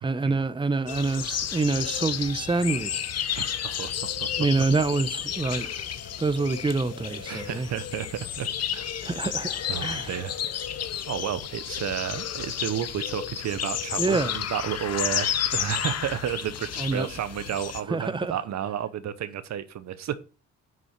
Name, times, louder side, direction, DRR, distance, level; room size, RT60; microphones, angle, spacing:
voice 1, 0.0-3.1 4.4-5.7 6.2-7.7 9.0-10.1 14.0-14.3 16.8-17.1 17.9-18.3, right 3 dB, 15° right, 0.9 m, -26 dB
sound 1, 0.9-17.8, left 9 dB, 55° left, 1.0 m, -32 dB
voice 2, 3.4-4.3 5.4-5.8 7.3-8.9 9.7-10.3 11.1-20.2, right 10 dB, 65° right, 0.9 m, -32 dB
9.2 x 6.1 x 6.7 m
cardioid pair, 90°, 30 cm